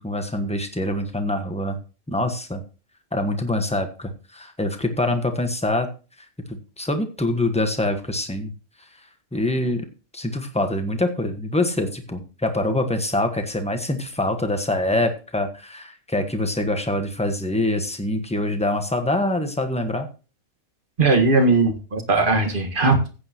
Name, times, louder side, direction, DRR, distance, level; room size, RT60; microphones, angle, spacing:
voice 1, 0.0-1.8 2.1-2.6 3.1-5.9 6.5-8.5 9.3-9.8 10.1-20.1, left 1 dB, 5° left, 6 dB, 1.1 m, -25 dB
voice 2, 21.0-23.1, right 3 dB, 35° right, 5 dB, 1.9 m, -19 dB
15.0 x 8.6 x 2.9 m, 0.35 s
omnidirectional pair, 1.5 m